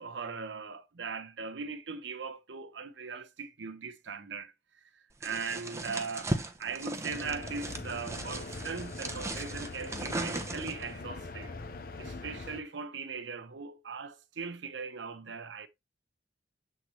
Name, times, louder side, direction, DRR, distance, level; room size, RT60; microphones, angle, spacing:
voice 1, 0.0-4.5 4.9-6.3 6.6-11.5 12.0-15.7, right 5 dB, 85° right, 0.9 m, -39 dB
sound 1, 5.2-10.9, right 2 dB, 15° right, 0.8 m, -37 dB
sound 2, 7.1-12.6, left 3 dB, 55° left, 0.8 m, -42 dB
7.7 x 3.9 x 3.1 m
head